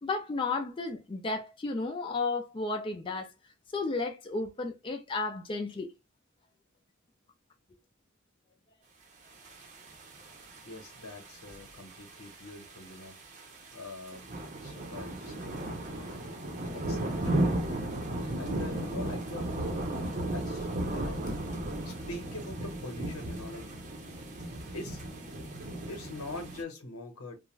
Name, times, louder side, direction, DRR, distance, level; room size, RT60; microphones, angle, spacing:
voice 1, 0.0-3.3 3.7-5.9 16.0-16.2, left 3 dB, 25° left, 0.3 m, -33 dB
sound 1, 9.4-26.6, right 1 dB, 35° right, 0.6 m, -36 dB
voice 2, 10.6-15.7 16.0-16.1 16.7-17.2 18.4-19.5 20.3-21.4 21.7-23.9 24.7-25.0 25.9-27.4, left 2 dB, 85° left, 1.0 m, -43 dB
2.4 x 2.1 x 3.0 m
head